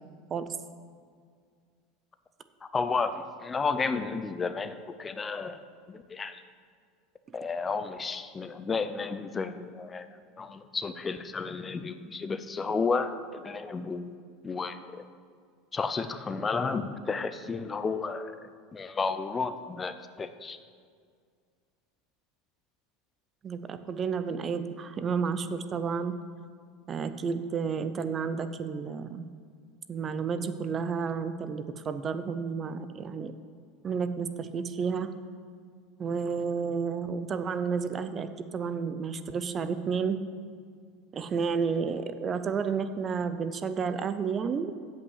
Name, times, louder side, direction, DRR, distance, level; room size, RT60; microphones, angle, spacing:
voice 1, 2.6-5.6 5.9-6.4 7.3-10.1 10.4-14.1 14.4-15.0 15.7-20.6, left 4 dB, 20° left, 11 dB, 0.5 m, -32 dB
voice 2, 23.4-26.1 26.9-29.2 29.9-33.3 33.8-35.1 36.0-40.2 41.1-44.7, right 6 dB, 30° right, 11 dB, 0.5 m, -31 dB
8.1 x 5.6 x 7.9 m, 2.1 s
supercardioid pair, 115°, 0 cm